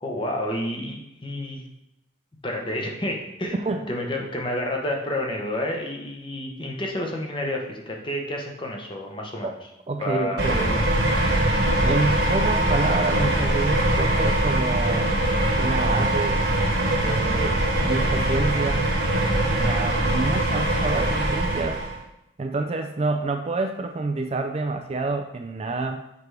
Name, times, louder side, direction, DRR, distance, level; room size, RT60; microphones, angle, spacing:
voice 1, 0.0-1.6 2.4-3.6 3.9-9.6 10.0-10.8 19.6-20.1, left 1 dB, 25° left, 1 dB, 0.9 m, -30 dB
voice 2, 9.9-10.8 11.8-15.1 15.6-16.4 16.9-18.9 19.5-21.8 22.4-26.0, right 3 dB, 30° right, 5 dB, 0.3 m, -28 dB
sound 1, 10.4-22.0, right 1 dB, 55° right, 1.2 m, -22 dB
6.7 x 4.6 x 3.3 m, 0.87 s
head